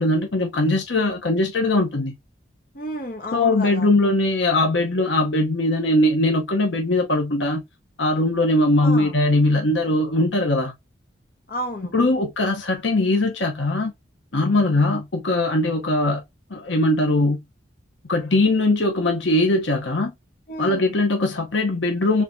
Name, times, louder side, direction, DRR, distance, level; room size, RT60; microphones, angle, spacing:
voice 1, 0.0-2.1 3.3-7.6 8.0-10.7 11.9-13.9 14.3-16.2 16.5-17.4 18.1-20.1 20.6-22.2, left 2 dB, 75° left, 1.0 m, -20 dB
voice 2, 2.7-3.9 8.8-9.2 11.5-11.9 20.5-20.8, equal, 50° left, 1.2 m, -31 dB
4.7 x 3.5 x 2.7 m
head